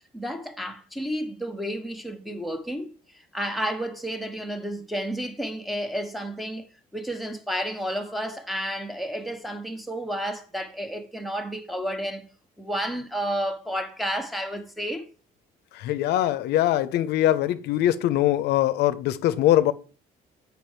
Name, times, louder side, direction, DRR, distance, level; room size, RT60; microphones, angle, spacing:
voice 1, 0.1-6.7 6.9-12.3 12.6-15.1, equal, ahead, 1.1 m, -31 dB
voice 2, 15.7-19.7, left 13 dB, 80° left, 0.6 m, -22 dB
7.3 x 5.7 x 4.4 m
cardioid pair, 110°, 17 cm